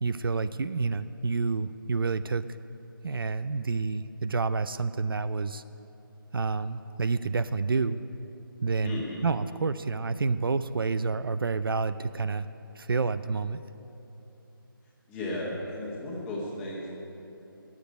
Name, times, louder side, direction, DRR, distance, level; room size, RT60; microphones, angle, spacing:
voice 1, 0.0-2.5 3.0-5.6 6.3-8.0 8.6-12.5 12.8-13.6, right 4 dB, 75° right, 13 dB, 0.4 m, -29 dB
voice 2, 8.8-9.2 15.1-16.9, left 1 dB, 10° left, -5 dB, 1.7 m, -34 dB
9.7 x 7.2 x 9.3 m, 3.0 s
figure-of-eight pair, 160°, 12 cm